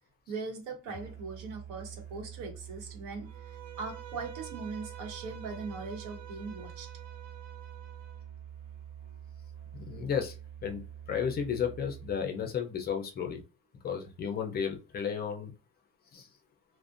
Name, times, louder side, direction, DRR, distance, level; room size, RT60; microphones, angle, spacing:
voice 1, 0.3-6.9, right 4 dB, 80° right, 0.9 m, -40 dB
Musical instrument, 0.9-12.6, right 9 dB, 40° right, 1.1 m, -46 dB
Bowed string instrument, 3.2-8.2, right 11 dB, 65° right, 0.5 m, -49 dB
voice 2, 9.8-10.3 10.6-10.8 11.1-13.4 13.8-15.5 16.1-16.3, left 7 dB, 30° left, 0.5 m, -33 dB
2.5 x 2.1 x 2.4 m
cardioid pair, 170°, 31 cm